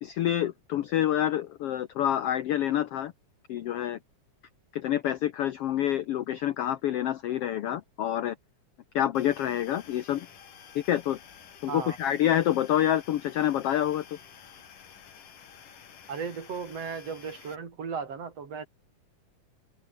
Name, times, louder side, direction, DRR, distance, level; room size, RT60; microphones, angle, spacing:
voice 1, 0.0-3.1 3.5-4.0 4.7-8.4 8.9-10.3 10.7-11.2 11.6-14.0, left 11 dB, 70° left, 1.4 m, -27 dB
sound 1, 9.1-17.5, left 8 dB, 90° left, 4.3 m, -51 dB
voice 2, 16.1-18.7, right 6 dB, 50° right, 3.9 m, -36 dB
omnidirectional pair, 3.6 m